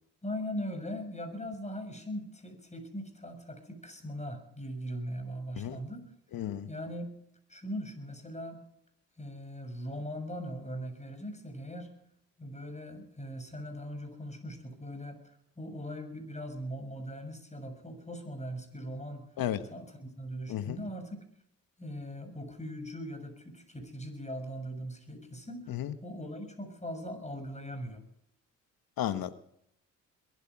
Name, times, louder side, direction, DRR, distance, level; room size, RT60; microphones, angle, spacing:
voice 1, 0.2-6.1 6.7-7.1 7.5-8.6 9.2-11.9 12.4-19.2 19.7-21.2 21.8-28.0, equal, 20° left, 7 dB, 6.8 m, -40 dB
voice 2, 6.3-6.7 19.4-19.6 20.5-20.8 25.7-25.9 29.0-29.5, left 11 dB, 70° left, 11 dB, 1.5 m, -33 dB
22.5 x 11.5 x 4.9 m, 0.72 s
hypercardioid pair, 50°, 37 cm